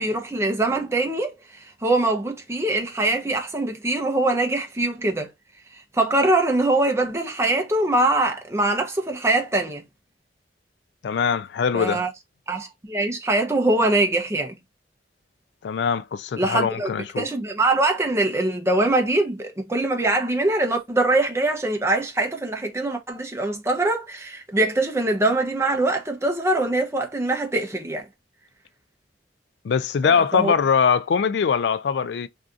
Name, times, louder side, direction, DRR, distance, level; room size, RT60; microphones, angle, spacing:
voice 1, 0.0-5.3 5.7-9.8 11.7-12.1 12.5-14.6 16.4-16.9 17.2-28.1 30.0-30.5, right 2 dB, 15° right, 0.6 m, -23 dB
voice 2, 11.0-12.0 15.6-17.3 29.6-32.3, left 6 dB, 65° left, 0.3 m, -22 dB
2.6 x 2.4 x 3.6 m
head